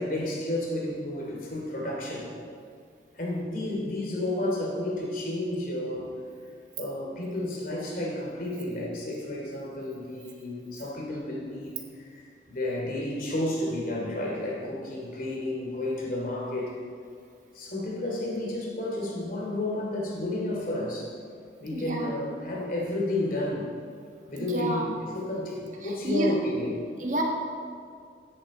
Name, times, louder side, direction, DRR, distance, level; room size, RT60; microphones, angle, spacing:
voice 1, 0.0-2.3 3.1-6.1 6.8-16.7 17.5-21.1 21.6-23.7 24.3-26.9, left 1 dB, 50° left, -2 dB, 3.0 m, -31 dB
voice 2, 21.7-22.1 24.4-24.9 25.8-26.4 27.0-27.2, right 1 dB, 45° right, 0 dB, 1.6 m, -29 dB
16.5 x 10.5 x 4.3 m, 2.2 s
head